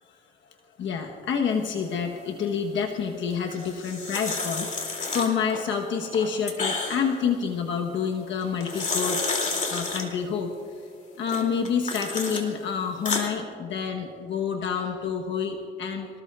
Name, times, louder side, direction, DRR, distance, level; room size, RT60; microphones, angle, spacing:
voice 1, 0.8-9.2 9.7-10.5 11.2-16.1, left 6 dB, 70° left, 2 dB, 1.2 m, -28 dB
sound 1, 3.5-5.6 6.0-7.2 8.4-10.1 11.3-12.4 12.8-13.3, left 3 dB, 40° left, 2.8 m, -30 dB
26.5 x 18.5 x 2.4 m, 2.5 s
cardioid pair, 90°, 20 cm